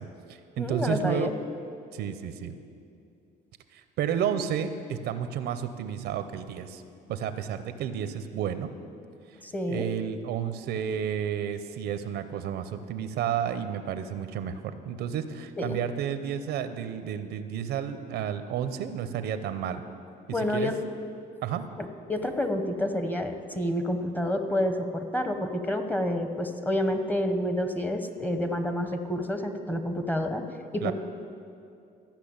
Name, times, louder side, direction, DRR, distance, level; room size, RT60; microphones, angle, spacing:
voice 1, 0.0-1.3 1.9-2.5 3.7-6.8 7.1-8.7 9.7-19.8 20.4-20.7 21.4-21.6 30.8-30.9, right 8 dB, 75° right, 10 dB, 0.7 m, -31 dB
voice 2, 0.6-1.3 9.4-9.9 15.6-15.8 20.3-20.7 21.8-30.4 30.7-30.9, left 1 dB, 10° left, 7 dB, 1.0 m, -29 dB
13.5 x 5.9 x 8.7 m, 2.5 s
cardioid pair, 110°, 17 cm